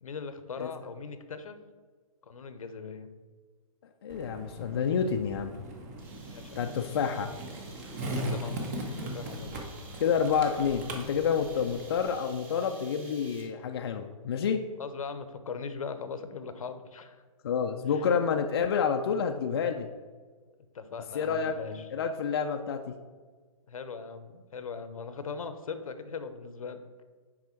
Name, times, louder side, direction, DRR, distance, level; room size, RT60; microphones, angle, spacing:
voice 1, 0.0-1.6 2.2-3.1 6.2-6.7 8.1-9.6 11.6-11.7 14.8-17.2 17.8-18.2 20.7-21.9 23.7-26.8, left 5 dB, 75° left, 10 dB, 0.8 m, -40 dB
voice 2, 4.0-5.6 6.6-7.3 10.0-14.6 17.4-19.9 21.1-21.5 21.9-22.8, left 6 dB, 45° left, 4 dB, 0.4 m, -28 dB
Skateboard, 4.1-12.1, right 1 dB, 30° right, 0.8 m, -39 dB
sound 1, 6.0-13.7, right 3 dB, 10° right, 0.5 m, -52 dB
6.1 x 4.8 x 4.3 m, 1.5 s
hypercardioid pair, 160°, 18 cm